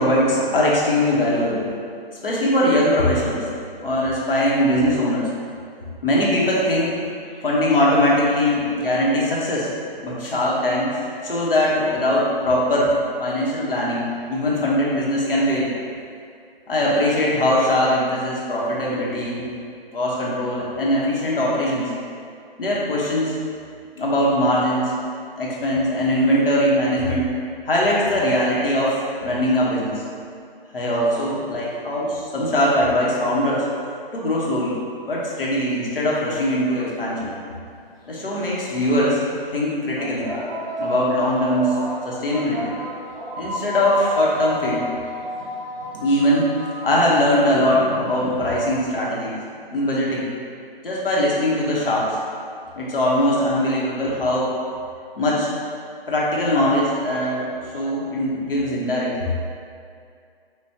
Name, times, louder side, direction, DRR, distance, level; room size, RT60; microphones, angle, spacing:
voice 1, 0.0-1.7 2.2-3.4 3.8-5.3 6.0-7.0 7.4-9.7 10.0-15.7 16.7-19.5 19.9-21.9 22.6-23.4 24.0-24.9 25.4-27.2 27.6-30.0 30.7-33.7 34.1-34.8 35.0-37.3 38.1-39.2 39.5-40.3 40.8-41.8 42.0-42.8 43.4-44.9 46.0-46.5 46.8-49.4 49.7-50.3 50.8-52.2 52.7-54.5 55.2-55.5 56.1-59.3, left 1 dB, 65° left, -5 dB, 1.2 m, -21 dB
sound 1, 37.9-38.0 38.9-39.1 39.9-48.8, equal, 5° right, 1.4 m, -31 dB
6.4 x 2.5 x 2.9 m, 2.3 s
figure-of-eight pair, 145°, 30 cm